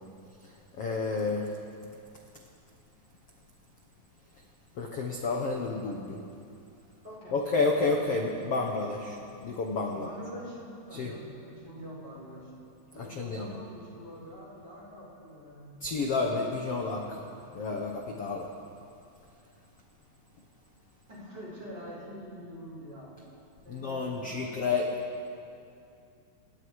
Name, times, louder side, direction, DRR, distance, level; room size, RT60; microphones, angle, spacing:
voice 1, 0.4-1.5 4.7-6.2 7.3-9.2 9.4-10.1 10.9-11.1 13.0-13.6 15.8-17.2 17.5-18.5 23.7-24.9, left 3 dB, 80° left, 1 dB, 1.3 m, -30 dB
voice 2, 7.0-7.3 9.9-12.5 12.9-15.8 21.1-23.1 23.6-24.6, equal, 25° right, -5 dB, 5.5 m, -45 dB
29.5 x 19.0 x 4.9 m, 2.6 s
omnidirectional pair, 5.1 m